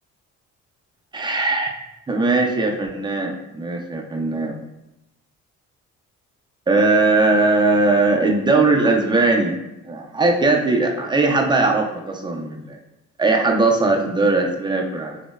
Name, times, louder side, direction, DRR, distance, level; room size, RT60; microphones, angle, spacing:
voice 1, 1.1-1.7 2.1-4.5 6.7-9.6 9.9-12.8 13.2-15.2, right 3 dB, 15° right, 1 dB, 0.3 m, -19 dB
2.8 x 2.0 x 2.2 m, 0.90 s
cardioid pair, 90°, 30 cm